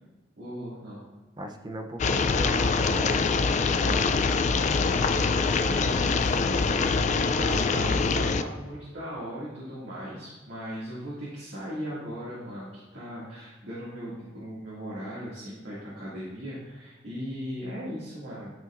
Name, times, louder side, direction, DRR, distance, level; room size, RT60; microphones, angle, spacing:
voice 1, 0.4-1.0 5.7-18.5, equal, 65° right, -9 dB, 2.3 m, -38 dB
voice 2, 1.4-4.4, equal, 25° right, 5 dB, 0.6 m, -38 dB
sound 1, 2.0-8.4, left 4 dB, 40° left, 0.3 m, -24 dB
12.0 x 5.5 x 2.5 m, 1.2 s
head